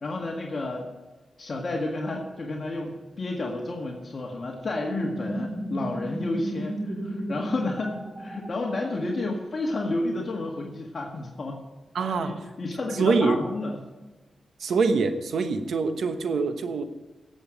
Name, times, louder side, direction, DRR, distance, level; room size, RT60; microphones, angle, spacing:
voice 1, 0.0-0.9 1.4-11.6 12.0-13.8, left 2 dB, 50° left, -1 dB, 1.8 m, -31 dB
sound 1, 4.7-9.1, right 1 dB, 25° right, 1.4 m, -34 dB
voice 2, 11.9-12.4 13.0-13.4 14.6-16.8, right 4 dB, 80° right, 8 dB, 1.1 m, -24 dB
17.0 x 7.7 x 5.2 m, 1.2 s
cardioid pair, 80°, 0 cm